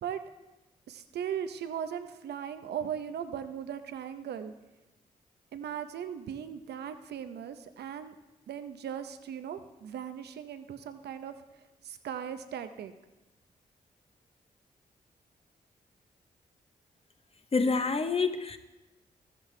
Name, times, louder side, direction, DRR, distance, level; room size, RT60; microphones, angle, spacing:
voice 1, 0.9-4.5 5.5-8.1 8.5-11.3 11.8-12.9, right 8 dB, 75° right, 9 dB, 0.7 m, -38 dB
voice 2, 17.5-18.6, left 4 dB, 35° left, 9 dB, 0.9 m, -27 dB
13.5 x 7.8 x 3.3 m, 1.0 s
supercardioid pair, 45°, 17 cm